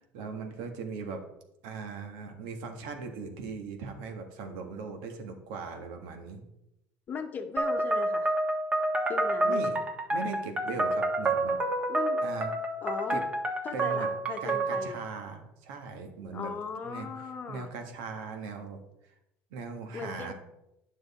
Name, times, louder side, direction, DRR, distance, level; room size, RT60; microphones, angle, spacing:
voice 1, 0.1-1.2 1.6-6.4 9.4-9.8 10.1-11.6 12.2-12.5 13.1-13.2 13.7-14.1 14.4-16.5 16.8-17.1 17.5-18.8 19.5-20.3, right 4 dB, 85° right, 4 dB, 1.6 m, -39 dB
voice 2, 7.1-8.3 9.1-9.6 11.9-12.2 12.8-13.2 13.6-15.0 16.3-17.7 19.9-20.3, left 5 dB, 30° left, 6 dB, 1.0 m, -38 dB
sound 1, 7.6-15.0, right 2 dB, 20° right, 1.3 m, -29 dB
9.6 x 6.3 x 4.2 m, 0.85 s
cardioid pair, 140°, 6 cm